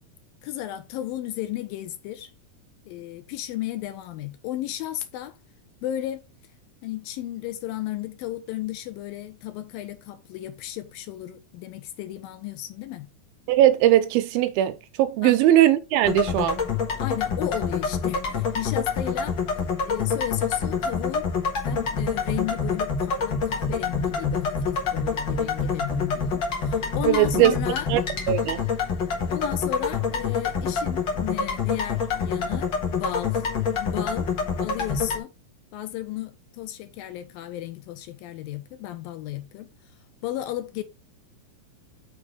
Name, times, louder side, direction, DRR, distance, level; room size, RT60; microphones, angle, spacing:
voice 1, 0.4-2.3 2.9-5.4 5.8-6.2 6.8-13.1 15.2-15.4 17.0-19.4 19.8-21.3 21.6-27.9 29.3-33.5 33.7-34.3 34.6-35.3 35.7-39.7 40.2-40.8, left 13 dB, 85° left, 2.5 m, -34 dB
voice 2, 13.5-16.6 27.1-27.6 27.9-28.0 28.3-28.6, right 12 dB, 90° right, 2.5 m, -19 dB
sound 1, 16.0-35.2, left 5 dB, 50° left, 1.4 m, -27 dB
6.5 x 3.6 x 5.0 m
omnidirectional pair, 4.2 m